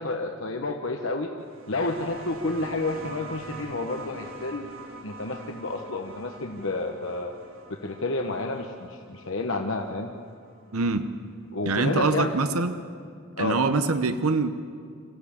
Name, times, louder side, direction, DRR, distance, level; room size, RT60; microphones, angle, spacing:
voice 1, 0.0-1.3 1.7-4.7 5.0-7.3 7.8-10.1 11.5-12.3 13.4-13.6, left 2 dB, 60° left, 3 dB, 1.2 m, -30 dB
sound 1, 1.4-10.6 11.8-11.9, right 2 dB, 70° right, 3.1 m, -44 dB
voice 2, 10.7-11.1 11.7-12.8 13.4-14.5, right 3 dB, 85° right, 9 dB, 0.9 m, -24 dB
26.0 x 15.0 x 8.6 m, 2.2 s
head